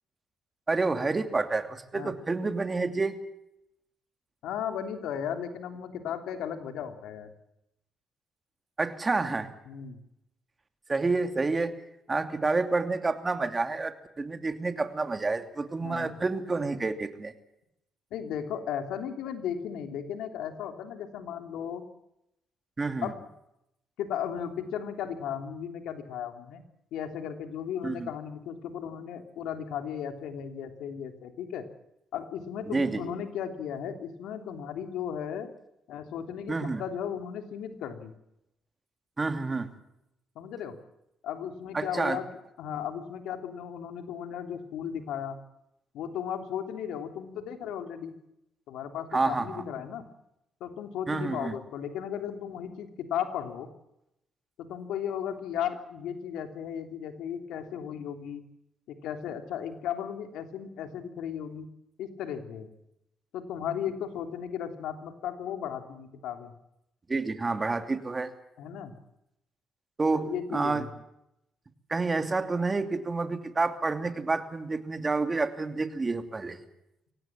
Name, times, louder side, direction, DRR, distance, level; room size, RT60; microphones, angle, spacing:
voice 1, 0.7-3.2 8.8-9.5 10.9-11.7 12.1-17.3 22.8-23.1 27.8-28.1 32.7-33.1 36.5-36.8 39.2-39.7 41.7-42.2 49.1-49.6 51.1-51.5 67.1-68.3 70.0-70.8 71.9-76.6, right 3 dB, 25° right, 8 dB, 2.7 m, -29 dB
voice 2, 4.4-7.3 9.7-10.0 15.8-16.2 18.1-21.8 23.0-23.3 24.0-26.6 26.9-31.6 32.1-35.5 35.9-38.1 40.3-40.8 41.2-42.3 42.6-45.4 45.9-48.2 48.7-50.1 50.6-53.7 54.6-58.4 58.9-61.7 62.0-62.7 63.3-66.5 68.6-68.9 70.1-70.9, left 8 dB, 85° left, 6 dB, 3.2 m, -35 dB
24.0 x 18.0 x 7.5 m, 0.82 s
cardioid pair, 90°, 0 cm